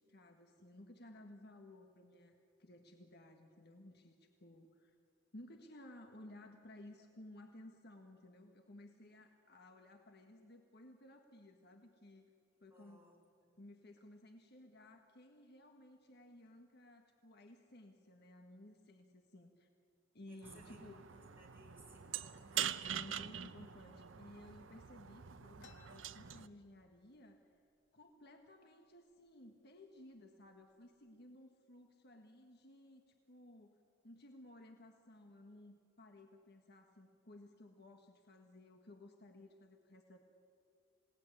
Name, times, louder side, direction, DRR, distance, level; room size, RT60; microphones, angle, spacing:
voice 1, 0.0-4.9 5.3-12.3 12.6-13.1 13.6-19.7 20.1-21.0 22.9-27.4 27.9-40.2, left 1 dB, 55° left, 4 dB, 1.6 m, -57 dB
voice 2, 12.7-13.1 13.4-13.5 20.3-20.8 21.1-23.0, right 1 dB, 10° right, -1 dB, 6.0 m, -62 dB
sound 1, 20.4-26.5, right 9 dB, 85° right, 0.8 m, -44 dB
sound 2, 25.6-27.2 27.5-27.6 27.9-28.5 29.1-29.3 30.0-30.2 30.6-31.1, left 5 dB, 75° left, 1.5 m, -66 dB
27.5 x 18.0 x 9.8 m, 2.5 s
head